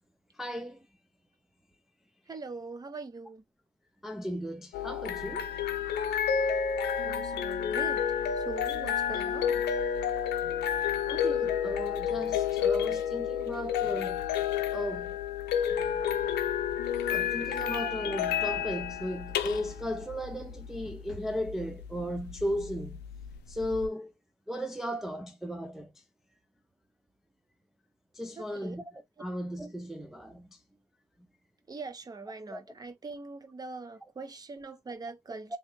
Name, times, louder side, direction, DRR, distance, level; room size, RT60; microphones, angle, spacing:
voice 1, 0.4-0.8 4.0-5.5 11.1-14.2 14.7-15.2 17.1-23.0 23.5-24.1 24.5-25.9 28.2-30.5 32.5-32.6 35.5-35.6, equal, ahead, 0.4 m, -36 dB
voice 2, 2.3-3.4 7.0-8.0 8.4-9.6 28.4-28.8 31.7-35.6, right 3 dB, 20° right, 0.8 m, -42 dB
sound 1, 4.7-23.9, left 8 dB, 75° left, 0.6 m, -30 dB
3.2 x 2.9 x 3.1 m
cardioid pair, 130°, 18 cm